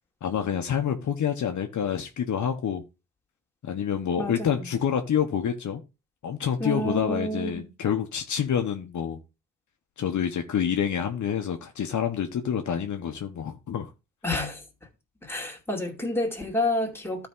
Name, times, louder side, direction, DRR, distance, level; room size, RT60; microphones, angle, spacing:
voice 1, 0.2-2.8 3.6-5.8 6.2-9.2 10.0-13.9, left 8 dB, 65° left, 1.1 m, -27 dB
voice 2, 4.2-4.6 6.6-7.7 14.2-14.6 15.2-17.3, left 1 dB, 5° left, 2.3 m, -29 dB
12.5 x 4.6 x 3.7 m
cardioid pair, 75°, 32 cm